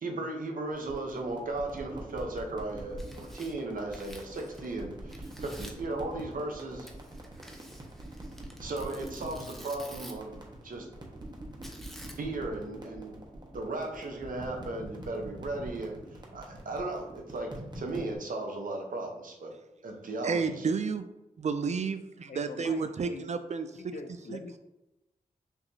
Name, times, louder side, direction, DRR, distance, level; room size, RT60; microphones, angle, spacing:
voice 1, 0.0-6.9 8.6-10.9 12.2-13.2 13.5-16.0 16.3-19.5 19.8-20.6, right 2 dB, 70° right, 2 dB, 0.9 m, -36 dB
sound 1, 0.7-18.2, right 1 dB, 30° right, 1.2 m, -45 dB
Tearing, 2.8-4.8 5.1-5.9 6.8-10.3 11.6-12.4, equal, ahead, 0.8 m, -50 dB
voice 2, 20.2-21.1 21.4-23.9 24.3-24.4, right 5 dB, 50° right, 9 dB, 0.4 m, -31 dB
voice 3, 22.3-23.3 23.7-24.6, left 3 dB, 60° left, 7 dB, 0.5 m, -44 dB
5.8 x 2.8 x 2.7 m, 0.94 s
cardioid pair, 45°, 15 cm